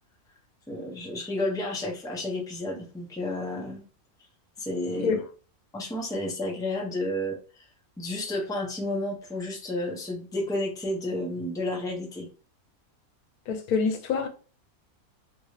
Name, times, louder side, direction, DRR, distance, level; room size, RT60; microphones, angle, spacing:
voice 1, 0.7-3.8 4.6-5.2 5.7-7.7 8.0-12.3, left 1 dB, 5° left, 0.6 m, -31 dB
voice 2, 13.5-14.3, left 5 dB, 85° left, 1.1 m, -26 dB
3.0 x 2.6 x 3.1 m
omnidirectional pair, 1.5 m